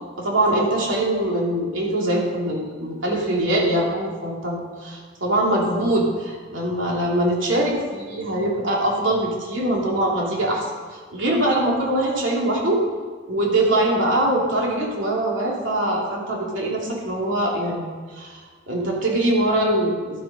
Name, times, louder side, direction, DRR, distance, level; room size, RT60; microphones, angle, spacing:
voice 1, 0.2-10.6 10.9-12.8 13.3-17.9 18.2-18.4 18.7-20.2, right 1 dB, 75° right, -2 dB, 3.0 m, -22 dB
12.0 x 9.6 x 5.3 m, 1.5 s
head